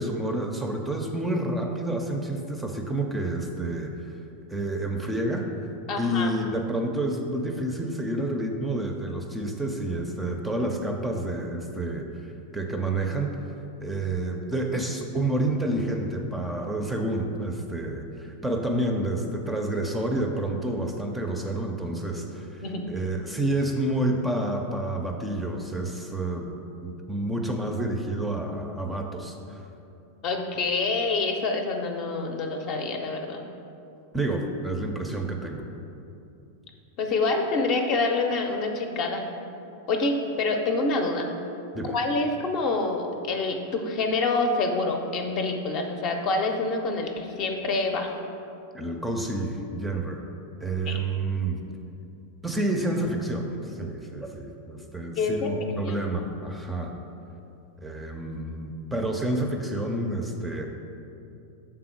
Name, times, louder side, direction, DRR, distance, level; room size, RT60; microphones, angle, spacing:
voice 1, 0.0-3.9 4.5-5.5 6.0-12.1 12.5-13.4 13.8-29.6 34.1-35.6 41.7-41.9 48.7-50.2 50.6-51.6 52.4-56.9 57.8-60.7, right 1 dB, 5° right, 2 dB, 0.5 m, -29 dB
voice 2, 5.9-6.3 22.6-23.0 30.2-33.4 37.0-39.3 39.9-41.3 41.9-48.1 50.9-51.0 55.2-55.5 55.8-56.0, left 3 dB, 40° left, 4 dB, 0.7 m, -26 dB
6.7 x 3.7 x 5.8 m, 2.7 s
figure-of-eight pair, 90°, 0 cm